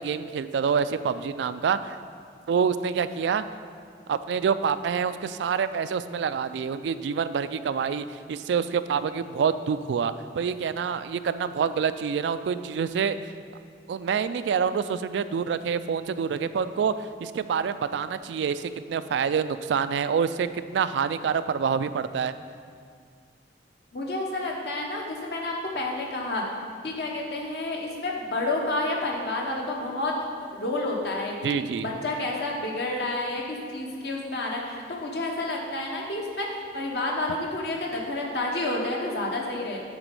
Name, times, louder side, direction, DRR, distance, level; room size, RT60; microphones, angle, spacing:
voice 1, 0.0-2.0 2.5-3.4 4.1-13.2 13.9-22.3 31.4-31.9, right 6 dB, 80° right, 13 dB, 0.3 m, -27 dB
voice 2, 23.9-26.4 26.8-30.1 30.5-31.6 31.8-39.8, left 2 dB, 65° left, -1 dB, 1.2 m, -30 dB
8.9 x 4.2 x 5.4 m, 2.1 s
head